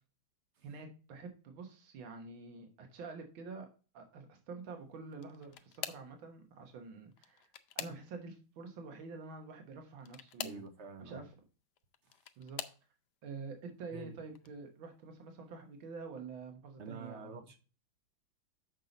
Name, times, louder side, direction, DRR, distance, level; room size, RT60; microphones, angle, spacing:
voice 1, 0.6-3.7 3.9-10.6 11.0-11.3 12.4-12.7 13.2-17.4, right 4 dB, 75° right, 4 dB, 2.0 m, -47 dB
sound 1, 5.1-6.2 7.1-8.4 10.0-10.7 11.8-12.8 13.6-13.9 14.4-14.5 15.8-15.9, left 11 dB, 70° left, 1.1 m, -45 dB
voice 2, 10.4-11.2 12.0-12.2 13.9-14.2 16.8-17.6, right 4 dB, 55° right, 7 dB, 0.7 m, -47 dB
7.4 x 5.6 x 3.9 m, 0.35 s
omnidirectional pair, 2.2 m